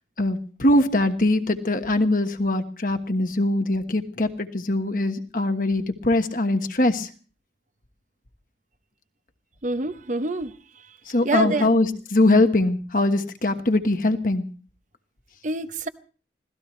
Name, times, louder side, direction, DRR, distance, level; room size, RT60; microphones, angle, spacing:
voice 1, 0.2-7.1 11.1-14.4, left 2 dB, 50° left, 1.3 m, -22 dB
voice 2, 9.6-10.5 11.2-11.7 15.4-15.9, right 2 dB, 45° right, 0.8 m, -26 dB
25.5 x 17.5 x 3.1 m
head